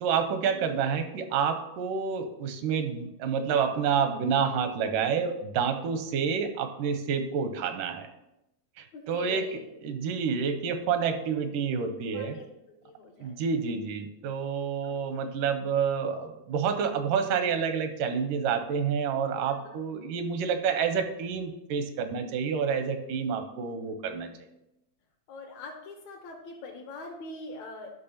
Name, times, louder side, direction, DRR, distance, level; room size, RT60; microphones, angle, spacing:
voice 1, 0.0-8.1 8.8-9.5 9.8-12.4 13.2-24.3, right 6 dB, 85° right, 8 dB, 2.2 m, -28 dB
voice 2, 8.9-9.7 12.1-12.4 12.8-13.3 14.8-15.3 19.6-19.7 25.3-27.9, left 3 dB, 70° left, 1 dB, 2.0 m, -42 dB
12.5 x 5.4 x 2.8 m, 0.89 s
omnidirectional pair, 3.8 m